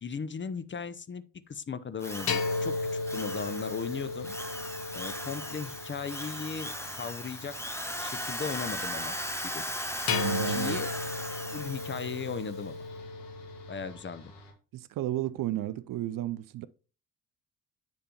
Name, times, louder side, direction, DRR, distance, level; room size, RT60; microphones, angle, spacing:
voice 1, 0.0-4.4 4.9-7.6 8.0-9.2 9.4-9.7 10.5-10.9 11.5-12.8 13.7-14.3, left 5 dB, 25° left, 0.7 m, -37 dB
sound 1, 2.0-14.5, left 2 dB, 75° left, 1.8 m, -52 dB
Drill, 2.0-12.4, equal, 5° left, 1.6 m, -38 dB
sound 2, 2.3-6.6 10.1-13.9, left 3 dB, 50° left, 1.2 m, -35 dB
voice 2, 10.1-10.8 14.7-16.7, right 14 dB, 45° right, 0.5 m, -33 dB
10.0 x 5.3 x 2.9 m
figure-of-eight pair, 45°, 48 cm